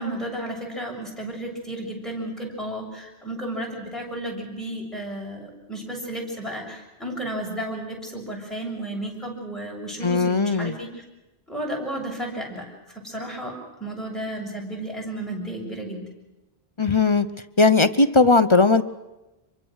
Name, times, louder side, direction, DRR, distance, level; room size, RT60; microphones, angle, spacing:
voice 1, 0.0-11.0 11.5-16.1, right 1 dB, ahead, -2 dB, 7.1 m, -33 dB
voice 2, 10.0-10.7 16.8-17.3 17.6-18.8, left 3 dB, 30° left, 11 dB, 0.9 m, -18 dB
26.5 x 23.5 x 6.5 m, 1.0 s
omnidirectional pair, 1.1 m